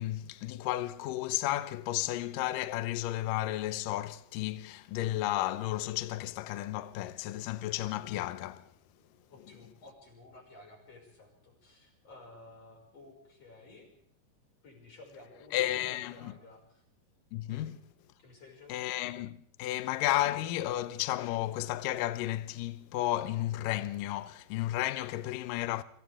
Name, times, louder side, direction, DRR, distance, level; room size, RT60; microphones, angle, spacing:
voice 1, 0.0-8.7 15.5-16.3 17.3-17.8 18.7-25.8, left 15 dB, 90° left, 1.9 m, -33 dB
voice 2, 9.3-13.9 14.6-16.8 17.4-17.8 18.2-18.9, left 2 dB, 35° left, 7.0 m, -54 dB
29.0 x 25.0 x 3.7 m
omnidirectional pair, 5.2 m